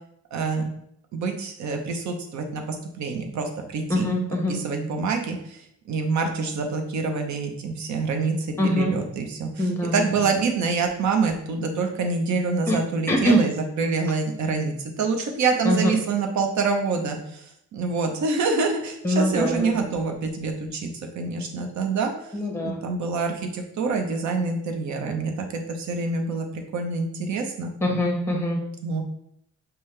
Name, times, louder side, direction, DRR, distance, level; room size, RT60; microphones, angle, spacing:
voice 1, 0.3-0.7 1.1-4.1 4.5-5.6 5.9-17.4 17.7-20.9 21.2-22.1 22.6-27.7 28.8-29.0, right 4 dB, 70° right, 4 dB, 0.8 m, -26 dB
voice 2, 3.9-4.6 8.6-9.0 9.6-10.1 12.7-12.8 13.1-13.4 15.6-15.9 19.0-19.9 22.3-22.8 27.8-28.6, equal, 10° left, 2 dB, 1.0 m, -23 dB
5.5 x 2.2 x 3.2 m, 0.74 s
cardioid pair, 90°, 30 cm